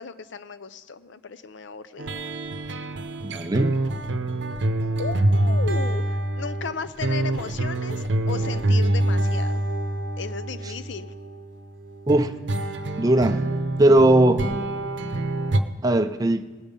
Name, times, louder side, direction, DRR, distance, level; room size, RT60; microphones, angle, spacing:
voice 1, 0.0-2.3 5.0-9.6 10.2-11.1, left 5 dB, 70° left, 14 dB, 0.6 m, -35 dB
sound 1, 2.0-11.4 12.1-15.6, right 1 dB, 70° right, 0.7 m, -25 dB
voice 2, 3.2-3.7 12.1-12.3 13.0-13.4 13.8-14.5 15.8-16.5, right 1 dB, 20° right, 8 dB, 0.4 m, -19 dB
19.5 x 7.2 x 5.3 m, 1.3 s
head